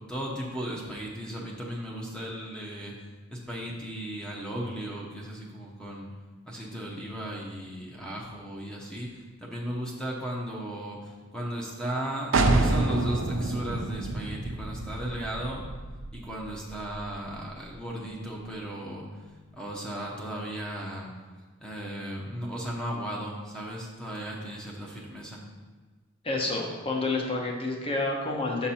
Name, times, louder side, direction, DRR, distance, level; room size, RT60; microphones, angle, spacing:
voice 1, 0.0-2.9 3.3-6.1 6.5-9.1 9.4-15.6 16.1-19.1 19.5-21.1 21.6-25.4, right 1 dB, 5° left, -3 dB, 0.9 m, -36 dB
sound 1, 12.3-17.9, right 2 dB, 70° right, 0.6 m, -28 dB
voice 2, 26.2-28.7, left 2 dB, 25° left, 0 dB, 1.0 m, -29 dB
6.0 x 5.8 x 4.3 m, 1.4 s
head